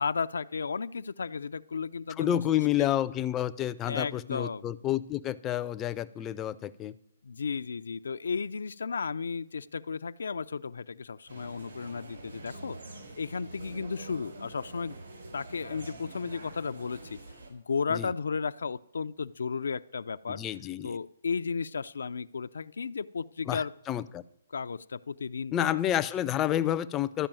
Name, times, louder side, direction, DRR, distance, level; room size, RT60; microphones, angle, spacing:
voice 1, 0.0-2.4 2.8-2.9 3.9-4.7 7.2-12.8 13.2-15.0 15.3-17.2 17.5-20.4 20.8-23.7 24.5-25.8, left 5 dB, 85° left, 13 dB, 0.4 m, -34 dB
voice 2, 2.2-6.9 17.9-18.1 20.3-21.0 23.5-24.2 25.5-27.3, left 12 dB, 15° left, 12 dB, 0.4 m, -29 dB
sound 1, 11.3-17.5, right 2 dB, 80° right, 4.6 m, -46 dB
12.0 x 5.4 x 8.9 m, 0.75 s
hypercardioid pair, 165°, 0 cm